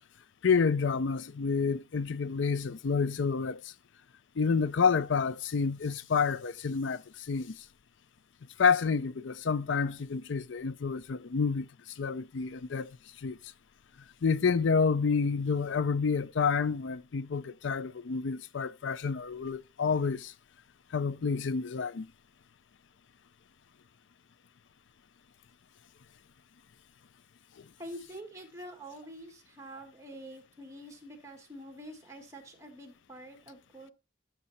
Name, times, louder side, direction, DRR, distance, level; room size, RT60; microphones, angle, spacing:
voice 1, 0.4-3.7 4.4-7.6 8.6-11.7 12.0-12.9 13.2-13.4 14.2-20.3 20.9-22.1, left 5 dB, 85° left, 0.5 m, -29 dB
voice 2, 27.8-33.9, right 1 dB, 15° right, 1.8 m, -46 dB
12.0 x 6.7 x 4.2 m
head